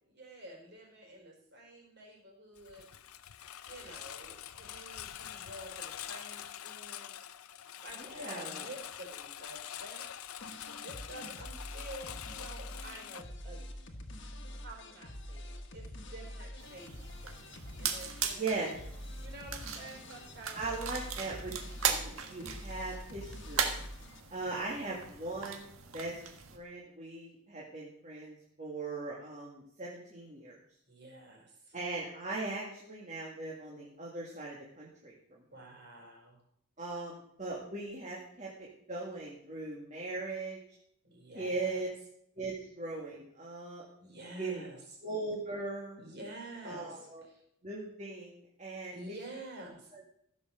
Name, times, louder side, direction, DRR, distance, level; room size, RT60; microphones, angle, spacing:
voice 1, 0.0-2.9 3.6-7.2 7.8-10.1 10.8-13.7 14.6-18.7 19.2-20.8 21.7-22.3 30.9-31.8 35.5-36.4 41.0-41.8 44.0-44.8 46.0-47.4 48.9-49.9, right 1 dB, 50° right, 0 dB, 4.8 m, -49 dB
Engine, 2.6-13.2, left 10 dB, 80° left, 0.7 m, -45 dB
voice 2, 8.0-8.7 18.3-18.7 20.5-23.8 24.3-25.7 25.9-26.2 26.5-30.6 31.7-35.1 36.8-40.6 41.3-41.9 42.4-43.8 44.4-44.6 45.0-46.0 46.6-47.2 47.6-49.0 49.9-50.0, right 3 dB, 35° right, -4 dB, 2.1 m, -39 dB
sound 1, 10.4-24.2, left 1 dB, 55° left, 1.6 m, -46 dB
sound 2, 16.6-26.6, right 7 dB, 70° right, 1.6 m, -38 dB
15.5 x 7.0 x 6.5 m, 0.72 s
head